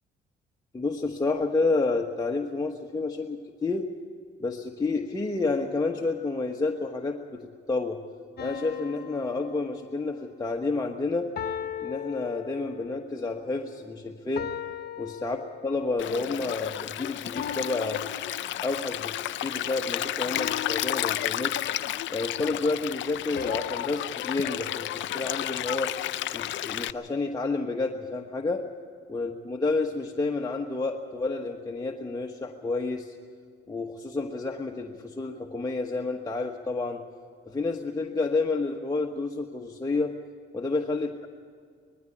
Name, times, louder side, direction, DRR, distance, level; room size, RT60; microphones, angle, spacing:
voice 1, 0.7-3.8 4.4-8.0 8.4-11.3 11.8-14.5 15.0-15.4 15.6-18.0 18.6-19.1 19.4-21.5 22.1-26.0 26.3-28.6 29.1-33.2 33.7-37.0 37.5-40.1 40.5-41.3, left 3 dB, 20° left, 1 dB, 1.3 m, -30 dB
sound 1, 8.4-10.3 11.4-13.0 14.4-15.9 17.4-19.0 20.4-22.0 23.4-25.7, left 9 dB, 55° left, 1.1 m, -39 dB
Stream, 16.0-26.9, left 13 dB, 70° left, 0.6 m, -32 dB
20.5 x 14.0 x 9.8 m, 2.1 s
cardioid pair, 90°, 20 cm